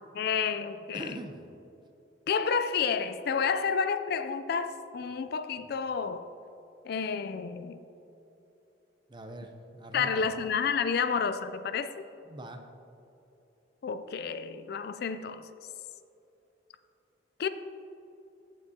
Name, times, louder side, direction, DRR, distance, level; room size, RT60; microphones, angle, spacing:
voice 1, 0.1-1.2 2.3-6.3 6.8-7.8 9.9-11.9 13.8-15.5 17.4-17.5, left 6 dB, 55° left, 11 dB, 0.4 m, -30 dB
voice 2, 0.9-1.5 9.1-10.3 12.3-12.6, right 1 dB, 25° right, 6 dB, 0.6 m, -42 dB
15.5 x 6.1 x 2.8 m, 2.9 s
head